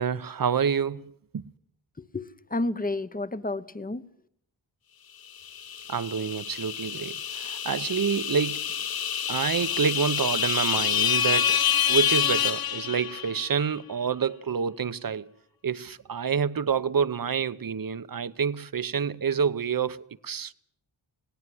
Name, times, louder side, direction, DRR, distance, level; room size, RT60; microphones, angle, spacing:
voice 1, 0.0-1.4 5.9-8.7 9.3-15.3 15.6-20.5, right 6 dB, 45° right, 0.8 m, -28 dB
voice 2, 2.0-4.1, left 2 dB, 15° left, 0.9 m, -31 dB
sound 1, 5.4-13.5, left 9 dB, 50° left, 0.7 m, -27 dB
19.5 x 17.0 x 7.8 m
cardioid pair, 55°, 49 cm